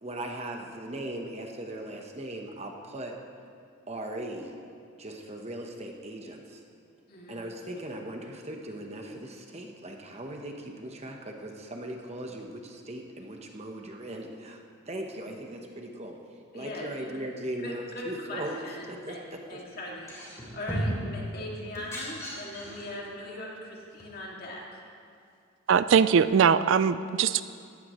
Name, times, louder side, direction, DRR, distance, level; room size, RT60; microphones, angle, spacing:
voice 1, 0.0-3.1 3.9-4.5 5.0-6.6 7.3-14.6 14.9-16.2 16.5-18.6 18.9-19.6, right 1 dB, 30° right, 2 dB, 1.1 m, -38 dB
voice 2, 7.1-7.4 16.5-16.9 17.6-20.1 20.5-24.6, left 1 dB, 45° left, -3 dB, 2.4 m, -40 dB
sound 1, 19.9-21.1 21.6-22.9 24.0-24.1, equal, 15° left, 3.2 m, -34 dB
voice 3, 25.7-27.4, right 7 dB, 60° right, 14 dB, 0.3 m, -21 dB
19.0 x 14.5 x 3.2 m, 2.3 s
head